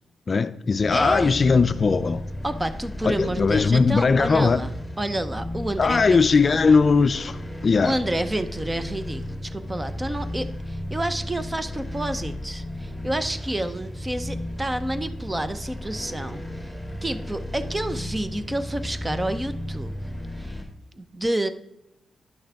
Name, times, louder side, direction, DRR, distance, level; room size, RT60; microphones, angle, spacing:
voice 1, 0.3-2.2 3.0-4.7 5.8-8.0, left 4 dB, 45° left, 0.4 m, -19 dB
sound 1, 0.7-20.6, left 1 dB, ahead, 2.3 m, -34 dB
voice 2, 0.9-1.4 2.4-4.7 5.0-6.7 7.8-16.7 17.0-19.9 20.4-20.6 20.9-21.5, right 1 dB, 20° right, 0.9 m, -29 dB
10.5 x 6.3 x 3.5 m
cardioid pair, 70°, 0 cm